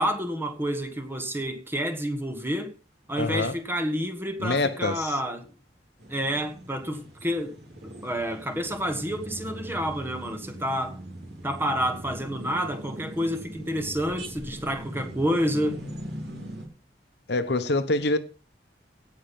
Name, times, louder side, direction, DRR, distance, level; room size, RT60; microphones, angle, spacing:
voice 1, 0.0-2.7 3.1-5.5 6.1-7.6 7.8-11.0 11.4-15.8, equal, 15° right, 1.4 m, -29 dB
voice 2, 3.2-3.5 4.4-5.1 17.3-18.2, left 2 dB, 65° left, 1.1 m, -25 dB
sound 1, 6.0-16.7, right 1 dB, 65° right, 3.5 m, -40 dB
17.0 x 5.8 x 5.4 m
head